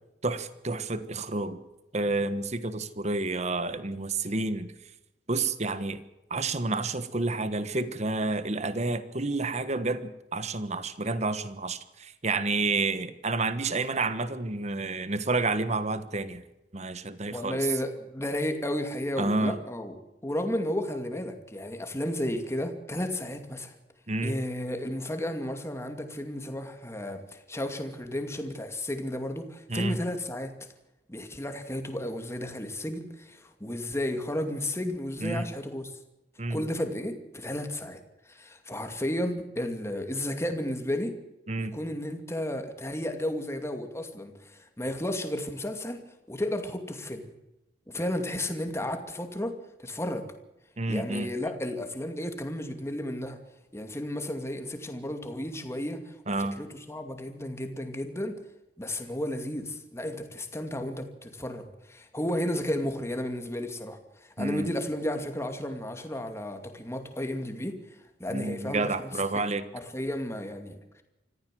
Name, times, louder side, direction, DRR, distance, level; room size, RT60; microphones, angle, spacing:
voice 1, 0.2-1.6 1.9-4.7 5.3-6.0 6.3-16.4 16.7-17.6 19.2-19.5 24.1-24.4 29.7-30.0 35.2-35.5 36.4-36.6 41.5-41.7 50.8-51.3 56.3-56.6 64.4-64.7 68.3-69.6, right 3 dB, 40° right, 12 dB, 1.4 m, -29 dB
voice 2, 17.3-20.0 20.2-23.8 24.2-30.5 31.1-35.9 36.5-38.0 38.3-41.1 41.6-46.0 46.3-47.3 47.9-50.3 50.9-53.4 53.7-58.3 58.8-67.8 68.2-69.2 69.7-71.0, left 1 dB, 15° left, 6 dB, 2.5 m, -33 dB
25.0 x 15.0 x 7.8 m, 0.95 s
head